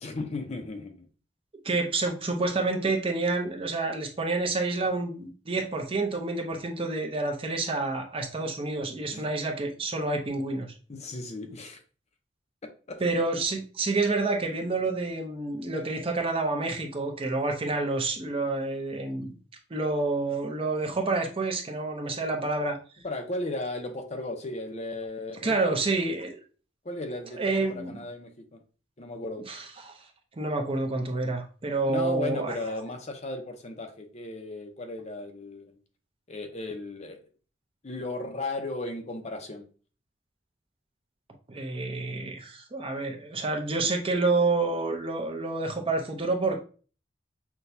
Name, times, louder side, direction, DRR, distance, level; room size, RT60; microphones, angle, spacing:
voice 1, 0.0-1.1 9.1-9.3 10.9-11.8 12.9-13.0 23.0-25.8 26.8-28.6 29.0-29.4 31.9-35.8 36.3-37.2 37.8-39.6, left 2 dB, 35° left, 5 dB, 0.6 m, -35 dB
voice 2, 1.6-10.7 13.0-19.3 19.7-22.8 25.4-26.4 27.4-28.0 29.5-29.9 30.4-32.5 41.5-46.6, right 3 dB, 30° right, 3 dB, 0.6 m, -28 dB
5.8 x 2.2 x 2.6 m, 0.38 s
head